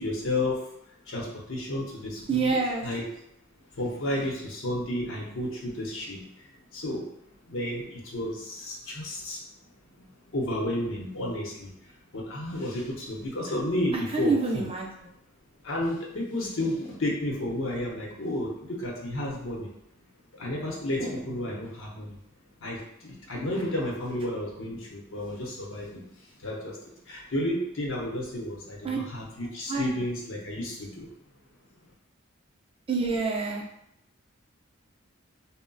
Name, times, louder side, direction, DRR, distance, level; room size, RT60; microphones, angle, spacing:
voice 1, 0.0-3.0 3.7-7.0 7.4-9.4 10.0-14.7 15.6-19.7 20.0-20.1 20.3-22.2 22.6-31.1, left 1 dB, 70° left, -3 dB, 0.8 m, -32 dB
voice 2, 2.3-2.8 14.1-14.9 28.8-29.0 29.7-29.9 32.9-33.6, right 4 dB, 30° right, -1 dB, 0.4 m, -26 dB
2.3 x 2.1 x 3.8 m, 0.76 s
head